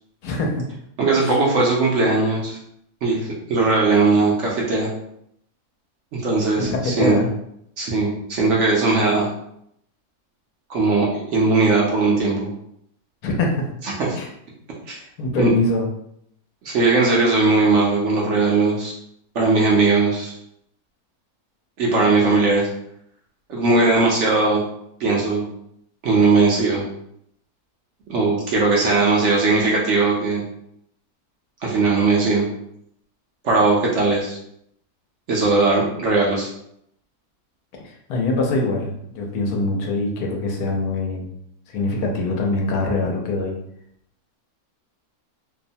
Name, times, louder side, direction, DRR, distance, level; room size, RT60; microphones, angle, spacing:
voice 1, 0.2-0.5 1.3-1.4 6.8-7.3 13.2-13.5 14.2-14.3 15.2-15.9 38.1-41.3 41.7-43.6, left 2 dB, 85° left, 0 dB, 1.1 m, -23 dB
voice 2, 1.0-2.6 3.0-4.9 6.1-7.2 7.8-9.3 10.7-12.5 13.8-14.2 14.9-15.0 15.4-15.5 16.6-18.9 19.3-20.3 21.8-22.7 23.5-24.6 25.0-25.4 26.0-26.8 28.1-30.4 31.6-32.5 33.4-34.4 35.3-36.5, right 3 dB, 60° right, -3 dB, 0.8 m, -19 dB
2.9 x 2.0 x 2.6 m, 0.74 s
omnidirectional pair, 1.6 m